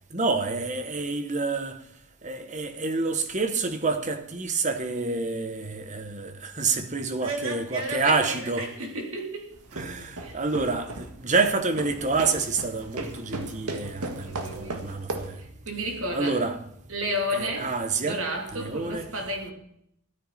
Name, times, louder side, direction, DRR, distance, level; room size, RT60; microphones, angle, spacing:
voice 1, 0.1-1.8 2.2-8.7 9.7-15.4 16.1-16.6 17.3-18.2 18.5-19.1, right 3 dB, 35° right, 1.2 m, -28 dB
voice 2, 7.2-9.5 10.2-10.4 14.2-14.8 15.4-16.4 16.9-17.7 18.0-19.5, equal, 65° right, 3.1 m, -32 dB
sound 1, 9.5-15.4, right 2 dB, 90° right, 1.8 m, -37 dB
14.5 x 13.0 x 4.2 m
head